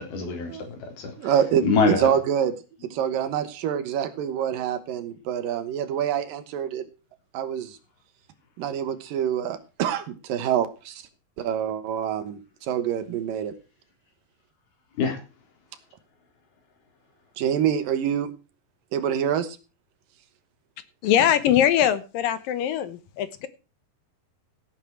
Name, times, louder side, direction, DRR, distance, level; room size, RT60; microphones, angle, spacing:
voice 1, 0.0-2.2 2.8-2.9 15.0-15.2, left 4 dB, 90° left, 5.6 m, -25 dB
voice 2, 1.2-2.6 2.8-6.8 7.3-7.8 8.6-11.0 11.4-13.5 17.4-18.3 18.9-19.6, right 9 dB, 70° right, 2.8 m, -26 dB
voice 3, 21.0-23.5, left 10 dB, 75° left, 2.6 m, -22 dB
16.0 x 8.4 x 4.5 m
omnidirectional pair, 4.3 m